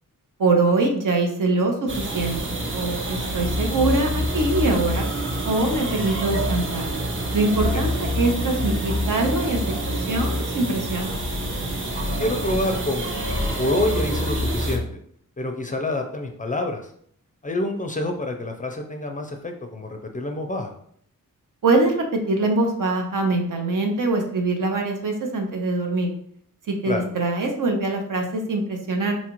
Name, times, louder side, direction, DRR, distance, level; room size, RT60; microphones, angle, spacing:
voice 1, 0.4-5.1 5.4-6.8 7.3-9.6 9.9-11.1 21.6-26.1 26.7-29.2, right 2 dB, 65° right, 2 dB, 0.8 m, -23 dB
sound 1, 1.9-14.8, equal, 35° right, 0.7 m, -26 dB
voice 2, 12.2-13.1 13.6-14.8 15.4-16.9 17.4-20.7 26.9-27.0, left 1 dB, 25° left, 4 dB, 0.4 m, -27 dB
4.1 x 2.4 x 2.9 m, 0.64 s
wide cardioid pair, 90°, 34 cm